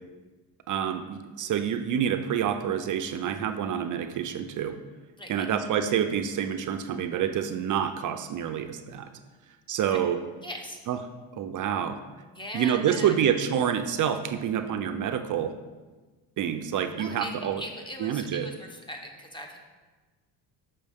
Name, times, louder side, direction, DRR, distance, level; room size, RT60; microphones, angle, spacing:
voice 1, 0.7-4.8 5.3-9.1 9.7-10.2 10.9-11.0 11.3-12.0 12.5-15.5 16.4-17.6 18.0-18.5, right 9 dB, 45° right, 8 dB, 0.5 m, -27 dB
voice 2, 10.4-10.8 12.3-13.2 17.0-19.6, equal, 10° left, 2 dB, 1.0 m, -40 dB
6.5 x 5.4 x 3.5 m, 1.3 s
cardioid pair, 95°, 44 cm